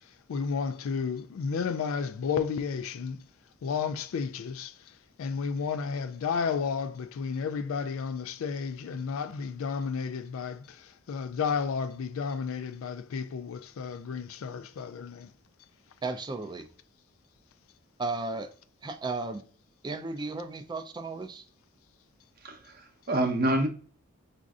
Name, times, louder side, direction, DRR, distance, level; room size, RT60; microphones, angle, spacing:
voice 1, 0.3-3.2 3.6-15.3, left 6 dB, 70° left, 0.3 m, -32 dB
voice 2, 16.0-16.7 18.0-18.5 18.8-19.4 19.8-21.4, right 3 dB, 20° right, 0.3 m, -34 dB
voice 3, 22.4-23.7, right 1 dB, 45° right, 0.7 m, -27 dB
5.0 x 2.6 x 2.3 m
head